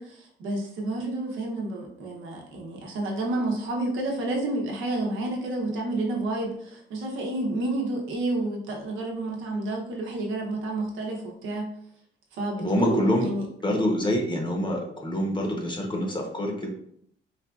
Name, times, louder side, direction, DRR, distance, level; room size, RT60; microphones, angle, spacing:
voice 1, 0.0-11.7 12.3-13.5, right 2 dB, 90° right, 0 dB, 0.8 m, -30 dB
voice 2, 12.6-13.3 13.6-16.7, left 1 dB, 25° left, 1 dB, 0.8 m, -26 dB
4.1 x 2.4 x 2.4 m, 0.69 s
cardioid pair, 90°, 20 cm